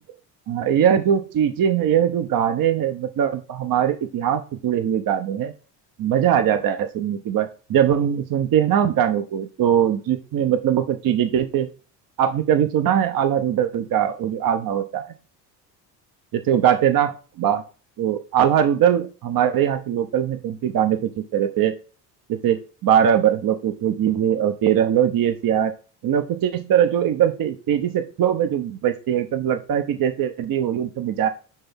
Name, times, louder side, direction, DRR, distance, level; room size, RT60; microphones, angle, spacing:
voice 1, 0.5-5.5 6.0-11.7 12.2-15.1 16.5-17.6 18.0-21.7 22.3-25.7 26.0-31.3, right 9 dB, 45° right, 8 dB, 0.9 m, -21 dB
10.0 x 3.5 x 3.6 m, 0.35 s
hypercardioid pair, 60°, 50 cm